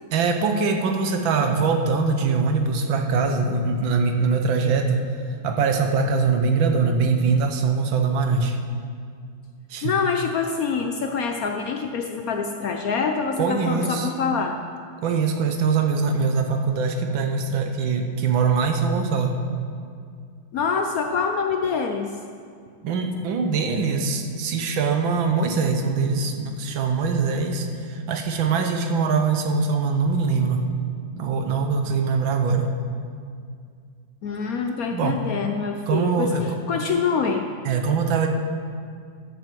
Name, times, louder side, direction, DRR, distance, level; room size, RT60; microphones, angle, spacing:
voice 1, 0.1-5.0 5.4-8.6 9.7-9.9 13.4-14.1 15.0-19.4 22.8-30.6 31.2-32.7 34.9-35.2 35.9-36.6 37.7-38.3, right 4 dB, 85° right, 5 dB, 1.7 m, -22 dB
voice 2, 9.8-14.6 20.5-22.1 34.2-37.4, left 5 dB, 70° left, 4 dB, 0.9 m, -25 dB
11.0 x 6.0 x 7.5 m, 2.2 s
omnidirectional pair, 2.1 m